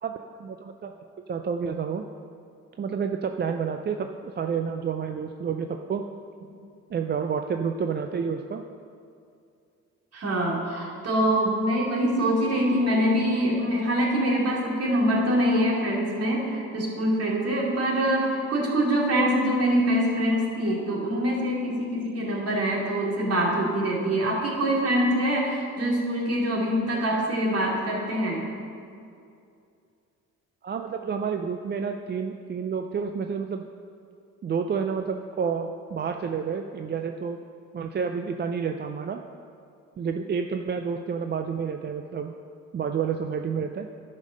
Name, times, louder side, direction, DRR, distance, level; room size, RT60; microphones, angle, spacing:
voice 1, 0.0-0.9 1.3-2.1 2.8-4.1 4.4-6.1 6.9-8.6 30.6-33.7 34.4-37.4 37.7-39.2 40.0-42.3 42.7-43.9, right 6 dB, 35° right, 5 dB, 0.4 m, -29 dB
voice 2, 10.1-28.5, equal, 55° right, -3 dB, 2.6 m, -24 dB
10.5 x 5.4 x 6.4 m, 2.4 s
cardioid pair, 90°, 30 cm